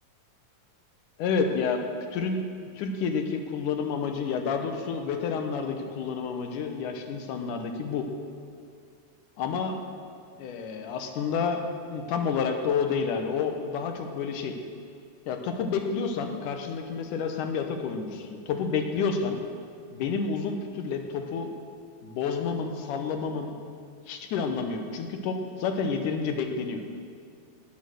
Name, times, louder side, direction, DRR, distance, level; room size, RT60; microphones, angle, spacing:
voice 1, 1.2-1.8 2.1-2.4 2.8-8.1 9.4-9.8 10.4-11.6 11.9-14.6 15.3-19.4 19.9-21.5 22.0-23.6 24.1-26.8, left 5 dB, 75° left, 5 dB, 2.3 m, -29 dB
18.5 x 6.4 x 6.3 m, 2.2 s
omnidirectional pair, 3.9 m